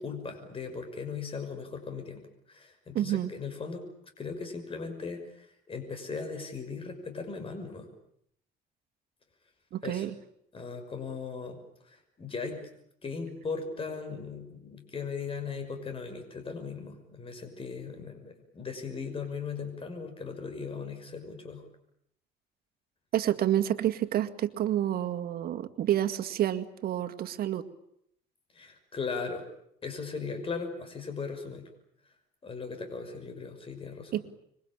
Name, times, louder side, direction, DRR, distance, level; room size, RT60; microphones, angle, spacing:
voice 1, 0.0-3.8 4.2-7.9 9.8-10.1 10.5-12.7 13.0-21.7 28.5-29.4 29.8-31.7 32.4-34.2, left 5 dB, 35° left, 7 dB, 6.0 m, -38 dB
voice 2, 2.9-3.3 9.7-10.1 23.1-27.7 34.1-34.3, right 12 dB, 65° right, 8 dB, 2.0 m, -29 dB
26.5 x 23.5 x 8.9 m, 0.73 s
cardioid pair, 110°, 17 cm